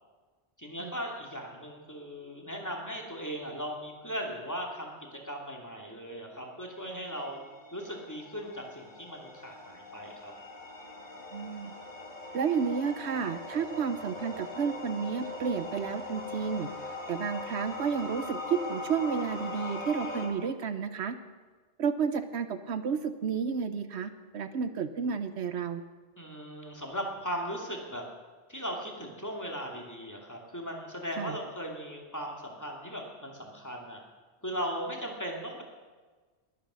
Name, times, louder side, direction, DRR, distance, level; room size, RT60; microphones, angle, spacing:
voice 1, 0.6-4.9 5.2-7.4 7.7-10.3 26.2-28.0 28.5-34.0 34.4-35.6, equal, 15° left, 0 dB, 2.5 m, -38 dB
sound 1, 7.1-20.3, left 2 dB, 45° left, 2.4 m, -41 dB
voice 2, 11.3-11.7 12.3-16.7 17.1-21.2 21.8-25.8 31.2-31.4, right 6 dB, 75° right, 11 dB, 1.1 m, -31 dB
21.5 x 9.6 x 6.3 m, 1.4 s
omnidirectional pair, 1.1 m